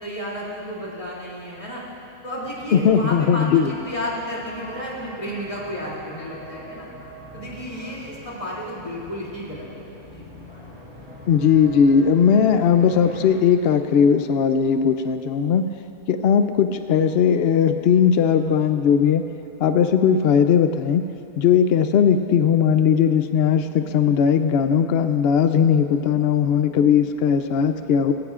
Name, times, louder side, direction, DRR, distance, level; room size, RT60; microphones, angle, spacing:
voice 1, 0.0-1.8 2.2-6.9 7.3-9.7 10.1-10.3, equal, 20° left, -6 dB, 2.8 m, -32 dB
sound 1, 2.4-13.4, equal, 25° right, 2.8 m, -42 dB
voice 2, 2.7-3.7 11.3-15.7 16.1-19.2 19.6-21.0 21.4-28.1, left 7 dB, 85° left, 8 dB, 0.5 m, -18 dB
20.0 x 17.0 x 2.5 m, 2.7 s
omnidirectional pair, 1.6 m